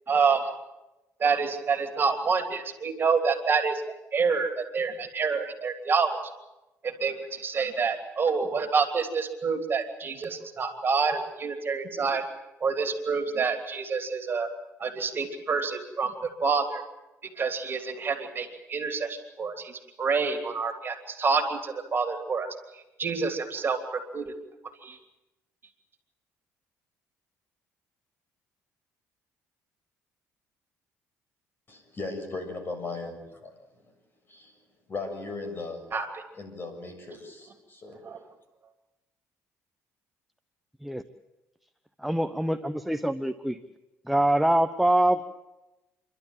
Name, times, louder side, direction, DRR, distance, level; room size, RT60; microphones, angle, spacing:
voice 1, 0.1-0.4 1.2-3.8 4.1-6.2 6.8-12.2 12.6-14.5 14.8-16.8 17.4-22.5 23.0-24.3 24.8-25.0 35.9-36.2 38.0-38.2, right 5 dB, 40° right, 6 dB, 2.9 m, -27 dB
voice 2, 31.7-33.5 34.3-34.5 34.9-35.8 36.3-37.9, left 3 dB, 35° left, 5 dB, 7.3 m, -37 dB
voice 3, 42.0-43.6 44.1-45.2, right 1 dB, ahead, 9 dB, 0.9 m, -24 dB
28.5 x 12.0 x 9.0 m, 1.0 s
supercardioid pair, 80°, 6 cm